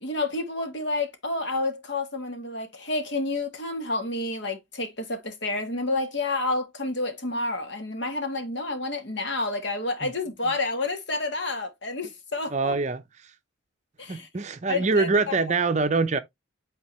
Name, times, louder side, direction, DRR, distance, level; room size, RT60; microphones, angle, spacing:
voice 1, 0.0-12.8 14.0-14.3 14.7-15.4, left 2 dB, 60° left, 1.4 m, -29 dB
voice 2, 12.5-13.0 14.1-16.2, right 3 dB, 35° right, 0.6 m, -24 dB
8.7 x 3.7 x 3.1 m
head